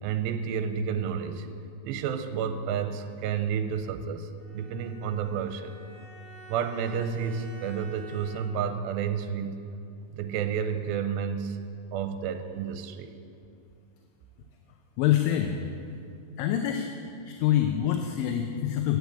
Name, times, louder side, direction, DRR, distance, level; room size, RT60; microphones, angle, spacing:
voice 1, 0.0-1.5 1.8-5.8 6.5-9.6 10.1-11.6 11.9-13.1, right 7 dB, 85° right, 8 dB, 2.4 m, -30 dB
Bowed string instrument, 4.4-8.9, right 1 dB, 50° left, 2.5 m, -50 dB
voice 2, 15.0-15.6 16.4-16.9 17.3-19.0, left 11 dB, 80° left, 5 dB, 2.3 m, -25 dB
11.0 x 8.2 x 8.2 m, 2.5 s
omnidirectional pair, 4.2 m